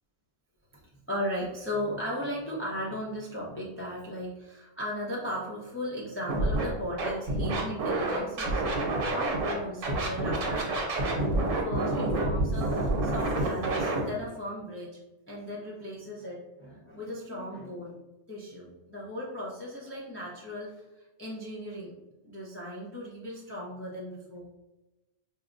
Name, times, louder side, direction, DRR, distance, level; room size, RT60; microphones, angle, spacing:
voice 1, 1.1-11.2 11.6-14.9 15.3-17.9 18.3-20.8 21.2-21.9 22.2-24.5, equal, 20° left, -6 dB, 0.3 m, -36 dB
Scratching (performance technique), 6.3-6.6 7.0-9.5 9.8-14.0, right 2 dB, 80° right, 1.1 m, -28 dB
4.7 x 2.3 x 2.5 m, 1.0 s
omnidirectional pair, 1.3 m